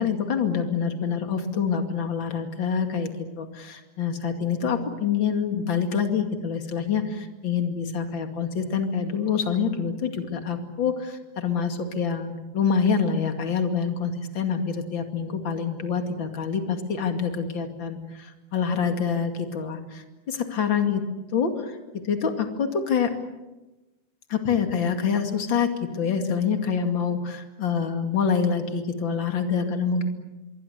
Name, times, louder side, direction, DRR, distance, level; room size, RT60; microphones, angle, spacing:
voice 1, 0.0-3.1 3.4-21.0 21.3-21.5 21.9-23.1 24.3-30.0, left 6 dB, 35° left, 6 dB, 2.4 m, -26 dB
26.0 x 23.0 x 8.3 m, 1.1 s
omnidirectional pair, 4.9 m